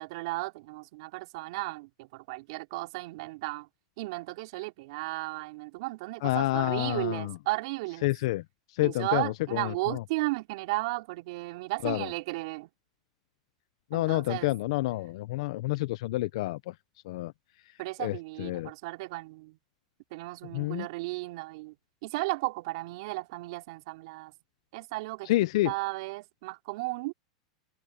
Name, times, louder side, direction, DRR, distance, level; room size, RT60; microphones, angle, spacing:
voice 1, 0.0-3.7 4.0-8.1 8.8-12.7 13.9-14.5 17.8-19.6 20.1-21.7 22.0-24.3 24.7-25.3 25.6-27.1, right 22 dB, 65° right, 3.5 m, -34 dB
voice 2, 6.2-7.4 8.0-8.4 8.7-10.0 11.8-12.1 13.9-16.7 17.1-17.3 18.0-18.7 20.5-20.9 25.3-25.7, left 18 dB, 65° left, 1.1 m, -29 dB
open air
hypercardioid pair, 105°, 3 cm